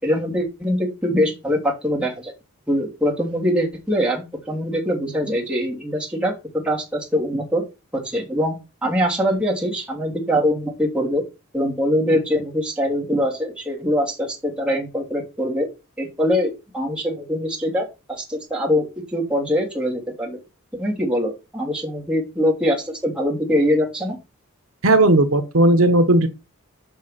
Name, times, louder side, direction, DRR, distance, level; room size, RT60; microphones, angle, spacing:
voice 1, 0.0-2.3 2.7-7.6 7.9-8.6 8.8-11.2 11.5-15.7 16.0-20.4 20.7-24.2, equal, 5° right, 2.9 m, -23 dB
voice 2, 24.8-26.3, right 1 dB, 70° right, 1.0 m, -15 dB
7.1 x 5.4 x 5.7 m
head